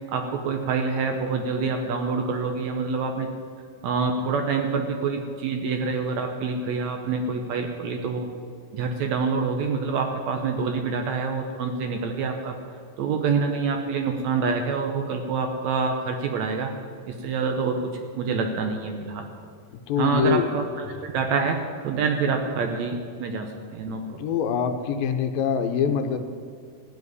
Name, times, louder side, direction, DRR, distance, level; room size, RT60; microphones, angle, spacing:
voice 1, 0.1-3.3 3.8-8.3 8.7-12.6 13.0-16.7 17.0-17.8 18.2-19.3 20.0-24.2, right 5 dB, 75° right, 4 dB, 1.7 m, -26 dB
voice 2, 19.9-20.5 23.9-26.2, left 7 dB, 80° left, 6 dB, 2.5 m, -24 dB
15.0 x 5.1 x 9.6 m, 2.2 s
omnidirectional pair, 4.1 m